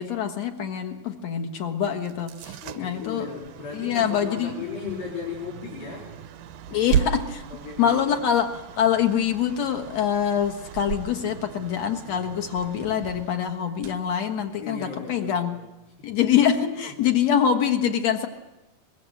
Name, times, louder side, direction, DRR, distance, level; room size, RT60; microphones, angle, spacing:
voice 1, 0.0-3.3 3.7-4.5 4.8-5.0 6.7-7.4 7.8-15.6 16.0-18.3, left 8 dB, 55° left, 6 dB, 2.4 m, -25 dB
sound 1, 2.0-14.9, right 9 dB, 80° right, 2.6 m, -35 dB
voice 2, 2.6-6.1 6.7-6.9 7.5-8.2 14.6-15.6 17.0-17.1, left 5 dB, 85° left, -5 dB, 6.0 m, -36 dB
24.0 x 21.5 x 7.8 m, 0.94 s
omnidirectional pair, 4.0 m